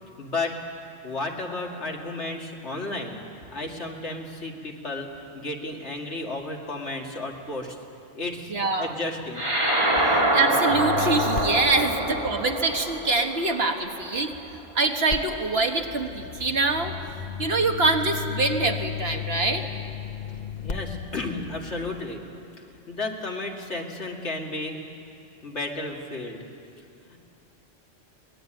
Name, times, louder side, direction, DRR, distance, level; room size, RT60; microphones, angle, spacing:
voice 1, 0.2-0.6 1.0-3.2 3.5-7.8 8.1-8.5 8.8-9.5 20.6-22.2 22.9-24.8 25.4-26.5 27.1-27.2, left 2 dB, 65° left, 0 dB, 2.6 m, -33 dB
voice 2, 8.5-8.9 10.1-14.3 14.7-16.9 17.4-19.6, right 3 dB, 55° right, 4 dB, 1.6 m, -24 dB
sound 1, 9.3-14.1, right 1 dB, 25° right, 3.3 m, -25 dB
sound 2, 10.7-13.9 15.1-22.0, left 8 dB, 40° left, 0.9 m, -35 dB
23.5 x 20.0 x 9.0 m, 2.6 s
omnidirectional pair, 1.2 m